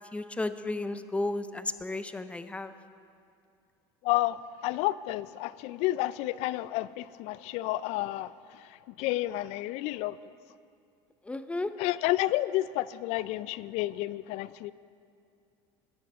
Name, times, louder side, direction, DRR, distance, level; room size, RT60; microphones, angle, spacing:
voice 1, 0.1-2.7 11.2-11.7, left 2 dB, 10° left, 11 dB, 0.6 m, -33 dB
voice 2, 4.0-8.3 9.0-10.2 11.8-14.7, left 16 dB, 65° left, 18 dB, 0.4 m, -30 dB
15.0 x 10.5 x 5.3 m, 2.4 s
supercardioid pair, 100°, 12 cm